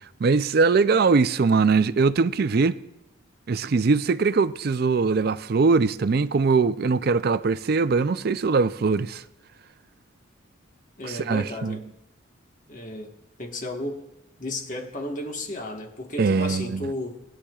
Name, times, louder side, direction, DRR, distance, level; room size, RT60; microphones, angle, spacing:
voice 1, 0.2-2.8 3.5-9.2 11.0-11.8 16.2-16.9, right 4 dB, 45° right, 0.4 m, -21 dB
voice 2, 11.0-11.8 12.7-13.1 13.4-14.1 14.4-17.2, left 1 dB, 40° left, 1.4 m, -33 dB
20.0 x 9.9 x 2.4 m
head